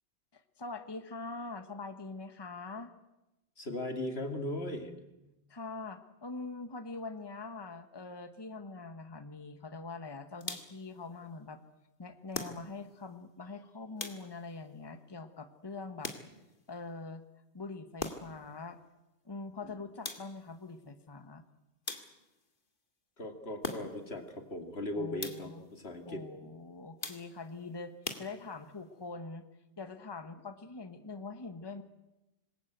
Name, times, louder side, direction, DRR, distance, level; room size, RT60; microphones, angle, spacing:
voice 1, 0.3-2.9 5.5-11.6 12.0-16.1 16.7-17.2 17.5-18.8 19.2-21.4 25.0-25.7 26.1-29.4 29.8-31.8, left 3 dB, 25° left, 9 dB, 1.3 m, -43 dB
voice 2, 3.6-4.9 19.6-19.7 23.2-26.2, left 1 dB, 75° left, 5 dB, 2.8 m, -38 dB
sound 1, 10.4-10.9 12.3-13.0 14.0-14.6 16.0-16.6 18.0-18.5 20.0-20.6 21.9-22.4 23.6-24.2 25.2-25.7 27.0-27.5 28.0-28.8, left 3 dB, 55° left, 2.2 m, -42 dB
26.5 x 21.0 x 8.1 m, 0.96 s
omnidirectional pair, 1.1 m